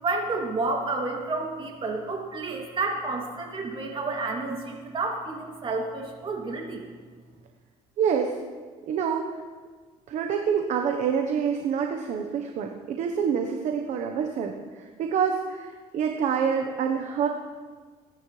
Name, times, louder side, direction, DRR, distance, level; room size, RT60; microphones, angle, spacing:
voice 1, 0.0-6.9, right 3 dB, 40° right, 0 dB, 2.7 m, -30 dB
voice 2, 8.0-8.4 8.9-9.3 10.1-17.3, right 7 dB, 65° right, 4 dB, 1.1 m, -27 dB
22.0 x 10.5 x 3.3 m, 1.5 s
cardioid pair, 100°, 13 cm